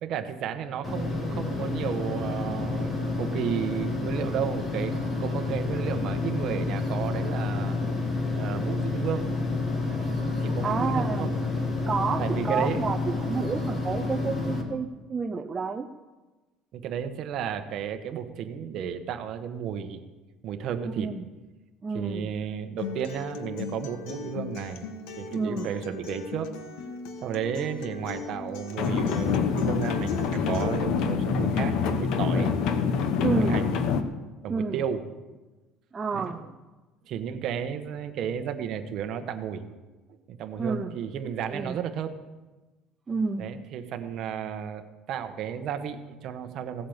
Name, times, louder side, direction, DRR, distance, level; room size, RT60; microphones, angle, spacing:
voice 1, 0.0-7.8 8.3-9.3 10.4-11.3 12.2-12.8 16.7-20.0 20.4-21.1 21.9-24.8 25.2-26.5 27.2-32.5 33.3-33.8 34.4-35.0 36.1-36.4 37.0-39.6 40.1-42.2 43.4-46.9, right 8 dB, 45° right, 7 dB, 1.1 m, -33 dB
sound 1, 0.8-14.6, left 3 dB, 20° left, 1.7 m, -29 dB
voice 2, 10.6-11.3 11.9-15.9 20.8-21.3 21.8-22.3 25.3-25.7 33.2-33.6 34.5-34.8 35.9-36.5 40.6-41.0 41.5-41.8 43.1-43.5, right 5 dB, 15° right, 3 dB, 0.5 m, -30 dB
Acoustic guitar, 22.8-30.8, left 5 dB, 75° left, 1.4 m, -38 dB
sound 2, 28.8-34.0, left 6 dB, 60° left, 1.0 m, -26 dB
16.5 x 8.5 x 7.2 m, 1.2 s
cardioid pair, 165°, 0 cm